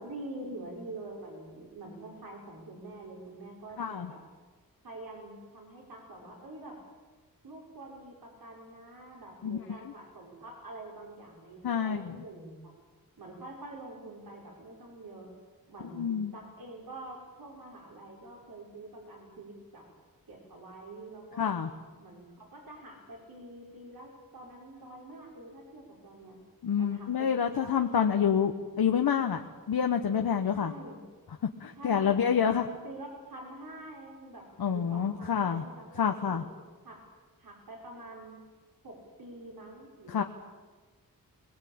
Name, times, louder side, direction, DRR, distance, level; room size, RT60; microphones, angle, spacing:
voice 1, 0.0-4.2 4.8-6.8 7.4-12.6 13.2-15.3 15.7-19.9 20.3-21.5 22.0-26.4 26.8-28.5 30.4-31.0 31.8-32.2 32.4-32.6 32.8-36.4 36.8-37.0 37.4-38.4 38.8-40.3, right 2 dB, 75° right, 0 dB, 5.3 m, -46 dB
voice 2, 3.8-4.1 9.4-9.6 11.6-12.1 15.9-16.3 21.4-21.7 26.6-29.4 29.7-30.7 31.6-32.6 34.6-35.6 36.0-36.4 40.1-40.2, left 7 dB, 90° left, 5 dB, 1.2 m, -27 dB
21.5 x 21.5 x 8.7 m, 1.3 s
wide cardioid pair, 160°, 36 cm